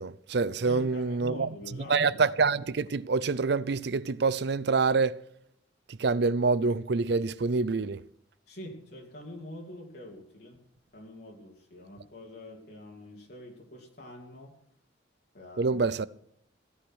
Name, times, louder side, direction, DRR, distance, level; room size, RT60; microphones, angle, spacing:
voice 1, 0.0-1.5 1.9-5.2 6.0-8.0 15.6-16.1, right 4 dB, 60° right, 0.5 m, -26 dB
voice 2, 0.6-2.3 8.5-10.6 10.9-14.5 15.3-15.8, left 1 dB, 55° left, 3.0 m, -45 dB
16.5 x 11.5 x 6.3 m
head